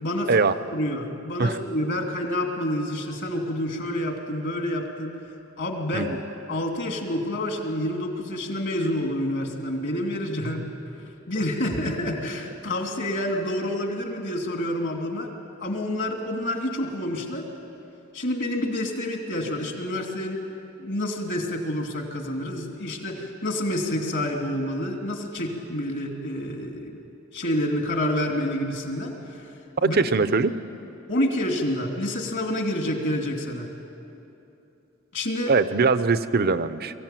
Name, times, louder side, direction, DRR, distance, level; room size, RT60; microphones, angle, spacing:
voice 1, 0.0-0.3 0.7-5.1 5.6-6.2 6.5-10.7 11.3-15.3 15.6-17.5 18.1-20.4 20.8-27.0 27.3-29.5 29.8-30.0 31.1-33.7 35.1-35.5, left 1 dB, 60° left, 3 dB, 2.7 m, -28 dB
voice 2, 29.8-30.5 35.5-36.9, right 4 dB, 50° right, 13 dB, 0.7 m, -21 dB
22.5 x 15.5 x 9.1 m, 2.9 s
head